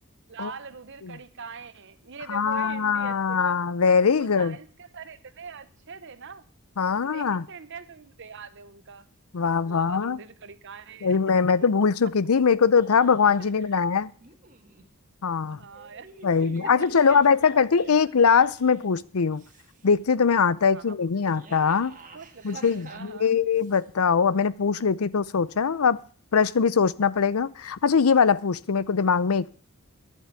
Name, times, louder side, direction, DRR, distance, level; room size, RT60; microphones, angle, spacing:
voice 1, 0.3-3.6 4.2-6.5 6.9-9.0 9.6-11.2 11.6-11.7 13.4-13.8 15.5-16.1 16.4-18.1 20.7-21.0 22.1-23.4, right 5 dB, 55° right, 1.0 m, -43 dB
voice 2, 2.3-4.6 6.8-7.4 9.3-10.2 11.0-14.1 15.2-15.6 16.2-19.4 19.8-21.9 22.4-26.0 26.3-29.5, left 6 dB, 75° left, 0.6 m, -22 dB
sound 1, 12.7-13.5 14.2-14.8 15.7-18.9 19.3-19.9 21.1-23.8, right 3 dB, 35° right, 1.7 m, -48 dB
11.5 x 7.6 x 8.2 m
head